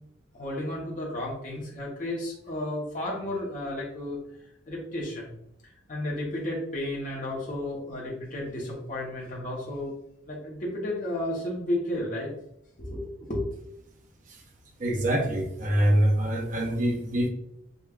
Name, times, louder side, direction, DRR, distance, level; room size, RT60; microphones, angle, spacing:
voice 1, 0.3-4.2 4.7-5.3 5.9-9.9 10.3-12.3 12.8-13.7, left 1 dB, 40° left, -4 dB, 0.9 m, -32 dB
voice 2, 14.8-17.3, right 1 dB, 40° right, 2 dB, 0.6 m, -24 dB
5.0 x 2.3 x 2.3 m, 0.75 s
head